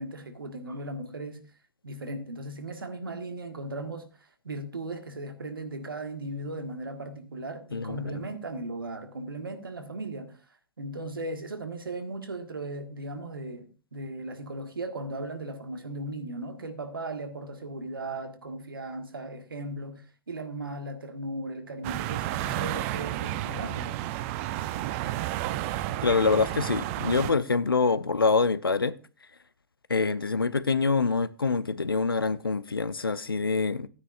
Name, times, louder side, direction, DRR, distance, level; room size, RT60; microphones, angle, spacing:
voice 1, 0.0-1.5 1.8-10.4 10.8-24.0, right 2 dB, 80° right, 1.6 m, -37 dB
voice 2, 7.7-8.2 26.0-28.9 29.9-33.9, left 4 dB, 85° left, 0.6 m, -25 dB
sound 1, 21.8-27.3, right 14 dB, 35° right, 0.6 m, -31 dB
15.0 x 9.5 x 2.4 m
figure-of-eight pair, 110°, 12 cm